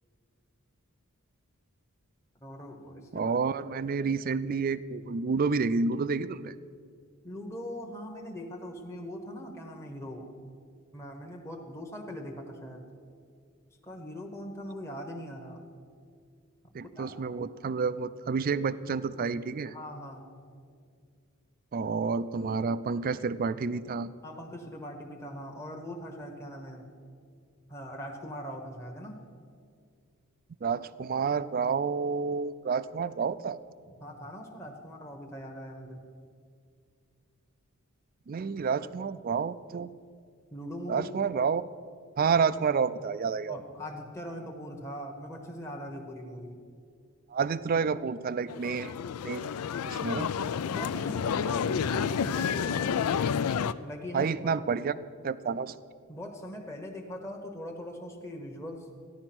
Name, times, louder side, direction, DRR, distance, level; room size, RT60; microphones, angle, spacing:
voice 1, 2.4-3.3 7.2-10.3 10.9-12.8 13.8-15.6 17.0-17.2 19.6-20.3 24.2-26.9 27.7-29.2 34.0-36.0 40.5-41.1 43.5-46.6 50.6-53.1 53.8-54.3 56.1-58.9, equal, 15° left, 1 dB, 1.0 m, -41 dB
voice 2, 3.1-6.5 16.7-19.7 21.7-24.1 30.6-33.6 38.3-39.9 40.9-41.6 42.2-43.6 47.3-49.0 49.2-49.5 49.9-50.3 54.1-54.9 55.2-55.7, right 5 dB, 40° right, 16 dB, 0.4 m, -29 dB
sound 1, 48.5-53.7, left 7 dB, 85° left, 0.4 m, -30 dB
14.5 x 11.0 x 6.0 m, 2.2 s
head